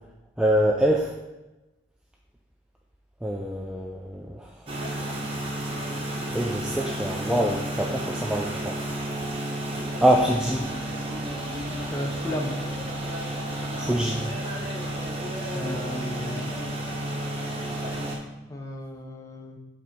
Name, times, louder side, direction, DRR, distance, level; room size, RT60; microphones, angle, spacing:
voice 1, 0.4-1.1 3.2-4.9 6.3-8.8 10.0-10.6 13.8-14.2, right 1 dB, 5° right, -1 dB, 0.3 m, -25 dB
sound 1, 4.7-18.2, right 1 dB, 30° right, 1.0 m, -31 dB
voice 2, 11.9-12.6 15.5-16.4 18.5-19.6, left 1 dB, 15° left, 1 dB, 0.7 m, -34 dB
5.3 x 4.0 x 5.8 m, 1.1 s
head